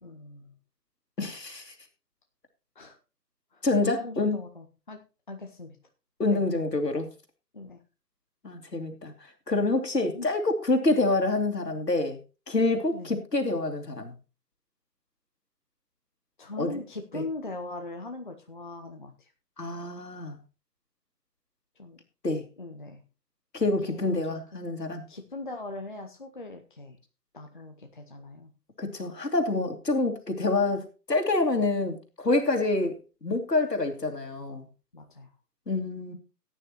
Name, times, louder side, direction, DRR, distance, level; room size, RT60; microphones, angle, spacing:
voice 1, 0.0-0.5 2.8-3.0 3.5-5.0 5.3-5.8 6.2-6.4 7.5-7.8 10.1-10.3 12.9-13.1 16.4-19.1 21.8-22.0 22.6-23.0 23.9-24.6 25.1-27.0 27.3-28.5 34.9-35.3, left 2 dB, 30° left, 5 dB, 0.8 m, -40 dB
voice 2, 1.2-1.7 3.6-4.4 6.2-7.1 8.4-9.1 9.5-12.2 12.5-14.1 16.6-16.7 17.1-17.2 19.6-20.4 22.2-22.4 23.5-25.1 28.8-34.6 35.7-36.1, left 2 dB, 75° left, 3 dB, 2.8 m, -27 dB
17.5 x 9.4 x 3.0 m, 0.32 s
figure-of-eight pair, 155°, 49 cm